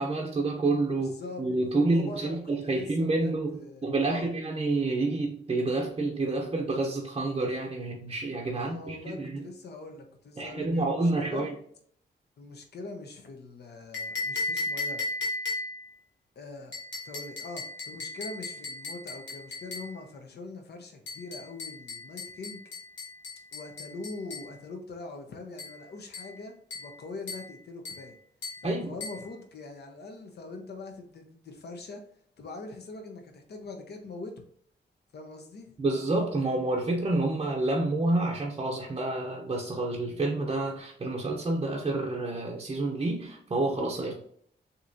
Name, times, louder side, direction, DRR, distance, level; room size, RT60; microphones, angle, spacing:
voice 1, 0.0-9.5 10.4-11.5 28.6-28.9 35.8-44.1, right 2 dB, 30° right, -1 dB, 0.7 m, -28 dB
voice 2, 1.0-1.4 1.9-2.4 2.6-4.3 8.5-11.5 12.4-15.0 16.3-16.7 17.0-22.6 23.5-28.2 28.6-32.0 32.4-34.4 35.1-35.7, left 3 dB, 65° left, 4 dB, 1.0 m, -42 dB
sound 1, 13.9-15.9 16.7-20.0 21.1-24.5 25.6-25.8 26.1-26.4 26.7-27.0 27.3-27.5 27.8-28.1 28.4-28.7 29.0-29.3, left 3 dB, 90° left, 1.9 m, -36 dB
6.6 x 2.9 x 2.6 m, 0.62 s
wide cardioid pair, 150°, 18 cm